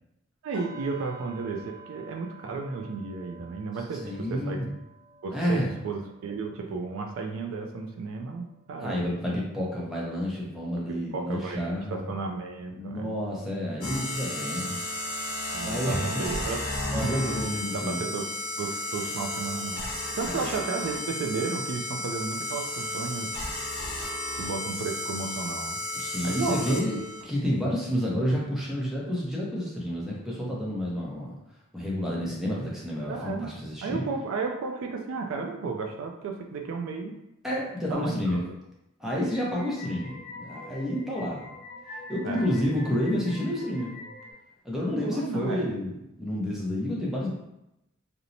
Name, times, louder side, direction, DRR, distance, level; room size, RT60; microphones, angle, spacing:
voice 1, 0.4-4.6 5.2-8.9 10.9-13.1 15.5-16.6 17.0-17.2 17.7-19.8 20.2-23.3 24.4-25.8 26.2-26.8 33.1-33.5 33.8-37.1 37.9-38.4 42.2-42.5 45.0-45.7, right 4 dB, 75° right, 3 dB, 0.3 m, -33 dB
sound 1, 0.5-10.5 10.8-11.1 11.5-11.7, right 3 dB, 35° right, 0.7 m, -51 dB
voice 2, 4.0-4.7 5.3-5.8 8.8-12.1 12.7-14.8 15.6-16.5 16.9-18.0 20.2-20.4 25.9-27.0 27.2-31.4 31.7-34.0 37.4-38.4 39.0-41.5 42.1-43.9 44.6-47.3, equal, ahead, -5 dB, 0.5 m, -30 dB
sound 2, 13.8-27.2, left 1 dB, 90° left, 0.7 m, -33 dB
sound 3, 39.0-44.3, left 3 dB, 50° left, 0.8 m, -44 dB
2.9 x 2.0 x 2.5 m, 0.87 s
head